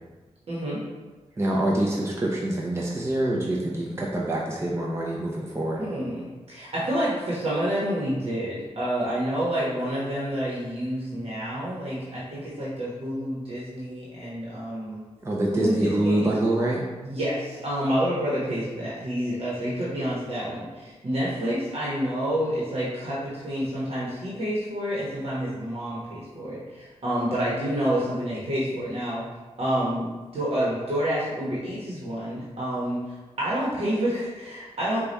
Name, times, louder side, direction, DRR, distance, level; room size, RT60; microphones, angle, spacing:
voice 1, 0.5-0.8 5.8-15.0 15.5-16.3 17.0-29.2 29.6-35.1, equal, 60° right, -7 dB, 1.1 m, -28 dB
voice 2, 1.4-5.9 15.2-16.8, right 1 dB, 25° right, -4 dB, 0.6 m, -25 dB
4.7 x 2.3 x 4.1 m, 1.2 s
wide cardioid pair, 85°, 11 cm